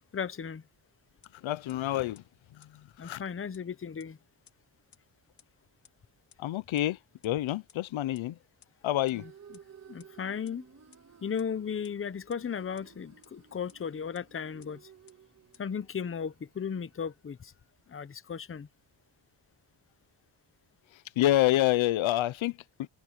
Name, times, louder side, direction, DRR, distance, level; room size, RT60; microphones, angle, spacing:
voice 1, 0.1-0.6 3.0-4.2 9.2-9.3 9.9-10.6 11.2-14.8 15.6-17.5 17.9-18.7, left 7 dB, 25° left, 0.8 m, -35 dB
sound 1, 1.2-1.3 1.7-1.8 2.1-2.2 2.6-2.7 3.1-3.2 3.5-3.6 4.0-4.1 4.5-4.6 4.9-5.0 5.4-5.5 5.8-5.9 6.3-6.4 6.8-6.9 7.2-7.3 7.7-7.8 8.1-8.2 8.6-8.7 9.1-9.2 9.5-9.6 10.0-10.1 10.5-10.6 10.9-11.0 11.4-11.5 11.8-11.9 12.3-12.4 12.8-12.9 13.2-13.3 13.7-13.8 14.1-14.2 14.6-14.7 15.1-15.2 15.5-15.6, left 8 dB, 60° left, 2.6 m, -57 dB
voice 2, 1.4-2.2 3.0-3.2 6.4-7.0 7.2-8.3 8.8-9.2 21.2-22.9, left 14 dB, 85° left, 0.7 m, -27 dB
sound 2, 8.8-17.0, right 7 dB, 35° right, 2.1 m, -56 dB
wide cardioid pair, 150°, 46 cm